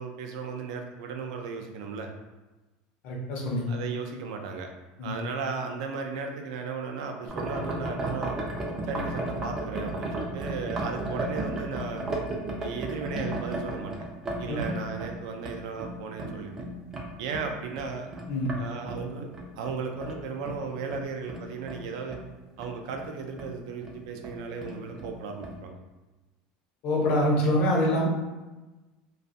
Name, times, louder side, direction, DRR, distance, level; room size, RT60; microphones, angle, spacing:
voice 1, 0.0-2.1 3.7-4.7 5.0-8.4 8.8-12.1 12.6-13.9 14.4-16.5 17.2-18.1 18.6-19.3 19.6-22.2 22.6-25.8, right 5 dB, 85° right, 4 dB, 0.4 m, -35 dB
voice 2, 3.0-3.7 5.0-5.2 14.5-14.6 18.3-18.5 26.8-28.1, left 1 dB, 50° left, -2 dB, 0.7 m, -25 dB
sound 1, 7.3-18.6 18.9-22.3 22.6-23.1 23.4-23.5 23.8-24.0 24.2-25.1 25.4-25.6, right 1 dB, 15° right, 0.3 m, -34 dB
2.4 x 2.3 x 2.6 m, 1.1 s
cardioid pair, 160°, 3 cm